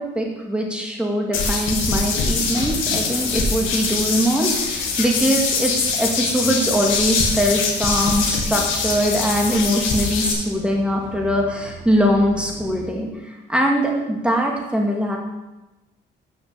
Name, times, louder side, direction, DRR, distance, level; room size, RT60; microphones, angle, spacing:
voice 1, 0.0-5.7 6.0-15.2, equal, 5° right, 0 dB, 2.2 m, -22 dB
sound 1, 1.3-10.3, left 4 dB, 85° left, 1.8 m, -23 dB
sound 2, 2.3-12.9, right 1 dB, 70° right, 2.6 m, -40 dB
7.4 x 6.2 x 6.9 m, 1.0 s
cardioid pair, 90°, 20 cm